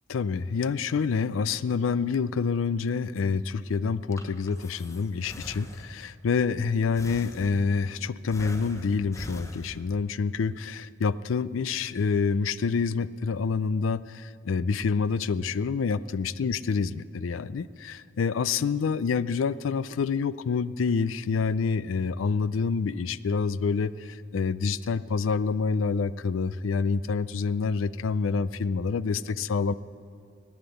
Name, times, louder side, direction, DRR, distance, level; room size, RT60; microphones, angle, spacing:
voice 1, 0.1-29.7, left 5 dB, 85° left, 17 dB, 0.4 m, -27 dB
Breathing, 3.9-6.2 7.0-7.9 8.3-10.1, left 1 dB, 15° left, 0.8 m, -43 dB
16.0 x 9.7 x 8.1 m, 2.4 s
head